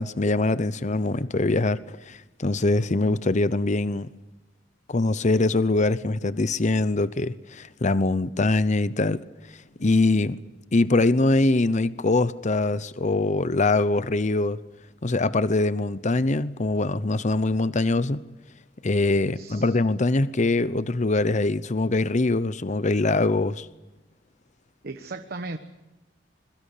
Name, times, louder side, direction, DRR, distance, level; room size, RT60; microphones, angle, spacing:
voice 1, 0.0-4.1 4.9-9.2 9.8-10.4 10.7-14.6 15.0-18.2 18.8-23.7, left 2 dB, 40° left, 0.8 m, -23 dB
voice 2, 19.3-19.8 24.8-25.6, right 3 dB, 55° right, 1.2 m, -36 dB
26.0 x 22.5 x 6.7 m
head